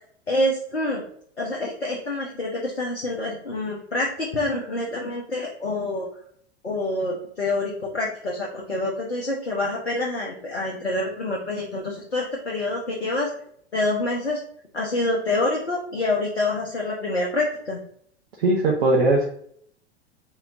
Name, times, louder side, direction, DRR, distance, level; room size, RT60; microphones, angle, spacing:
voice 1, 0.3-1.0 1.4-6.1 6.6-13.3 13.7-14.4 14.7-17.8, left 2 dB, 80° left, -3 dB, 1.0 m, -26 dB
voice 2, 18.4-19.3, right 2 dB, 60° right, -3 dB, 1.1 m, -19 dB
4.2 x 4.0 x 2.6 m, 0.62 s
figure-of-eight pair, 95°, 32 cm